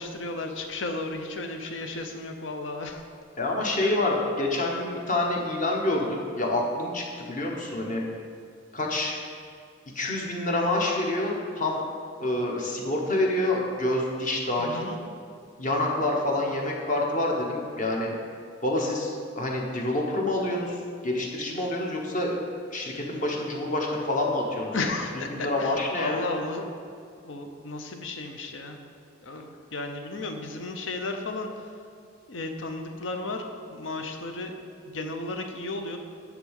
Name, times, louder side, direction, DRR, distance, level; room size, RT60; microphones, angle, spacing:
voice 1, 0.0-3.1 3.8-4.0 14.6-15.0 24.7-26.8 27.2-28.8 29.2-31.7 32.3-34.5 34.8-36.0, left 2 dB, 65° left, 5 dB, 0.8 m, -34 dB
voice 2, 3.4-8.0 8.7-9.2 9.9-11.8 12.2-14.8 15.6-18.1 18.6-22.4 22.7-24.9 25.3-26.2, left 1 dB, 40° left, -1 dB, 1.1 m, -27 dB
10.5 x 3.6 x 6.5 m, 2.3 s
head